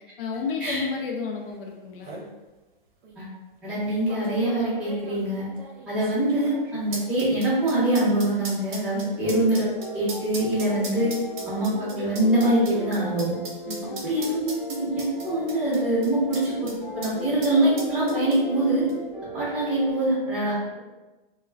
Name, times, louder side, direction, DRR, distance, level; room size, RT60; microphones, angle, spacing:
voice 1, 0.2-2.3 8.9-9.2 13.6-14.0, left 5 dB, 65° left, 1 dB, 0.5 m, -32 dB
sound 1, 1.5-1.6 1.8-2.3 3.0-3.1 4.1-16.8 17.0-17.1 17.4-18.6 18.9-19.0, right 3 dB, 55° right, 0.7 m, -39 dB
voice 2, 3.6-5.4 5.9-11.1 11.5-13.3 14.0-18.8 19.3-20.8, right 1 dB, 5° right, -12 dB, 0.6 m, -24 dB
sound 2, 9.2-19.9, right 1 dB, 20° right, 1.1 m, -37 dB
2.2 x 2.2 x 3.2 m, 1.2 s
hypercardioid pair, 155°, 29 cm